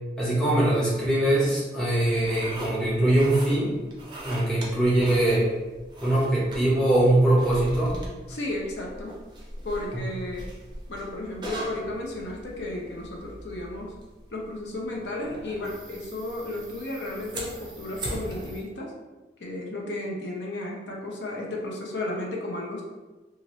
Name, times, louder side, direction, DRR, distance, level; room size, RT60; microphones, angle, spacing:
voice 1, 0.2-3.7 4.2-5.5 6.0-8.0 9.9-10.0, right 1 dB, 5° left, -8 dB, 0.7 m, -22 dB
sound 1, 2.1-18.6, right 1 dB, 25° right, 0.5 m, -41 dB
voice 2, 8.3-9.1 9.6-10.4 10.9-13.9 14.3-18.9 19.4-22.8, left 1 dB, 90° left, -2 dB, 0.6 m, -33 dB
2.9 x 2.5 x 3.0 m, 1.2 s
head